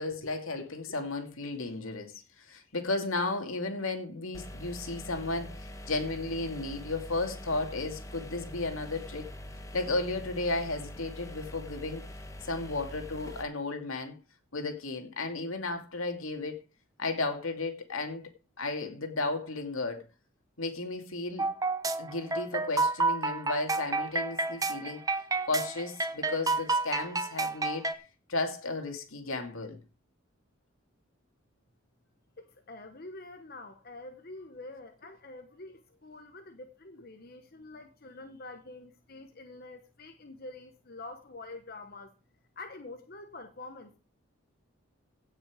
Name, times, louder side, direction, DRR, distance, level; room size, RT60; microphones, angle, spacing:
voice 1, 0.0-9.3 9.7-12.1 12.4-14.2 14.5-16.6 17.0-18.3 18.6-20.0 20.6-21.5 22.0-25.0 25.4-27.9 28.3-29.8, left 2 dB, 80° left, 2.4 m, -34 dB
sound 1, 4.3-13.4, left 1 dB, 15° left, 1.1 m, -44 dB
sound 2, 21.4-27.9, right 3 dB, 15° right, 0.8 m, -30 dB
voice 2, 32.4-42.1 42.6-44.0, left 2 dB, 45° left, 1.1 m, -46 dB
16.5 x 6.1 x 5.0 m
head